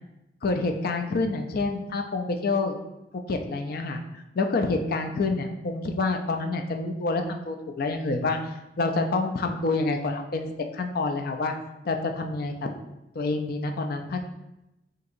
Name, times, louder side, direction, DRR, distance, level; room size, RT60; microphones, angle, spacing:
voice 1, 0.4-2.8 3.1-4.0 4.4-8.4 8.8-11.5 11.9-12.7 13.2-14.2, left 3 dB, 60° left, 5 dB, 0.4 m, -27 dB
6.5 x 2.9 x 2.6 m, 0.93 s
head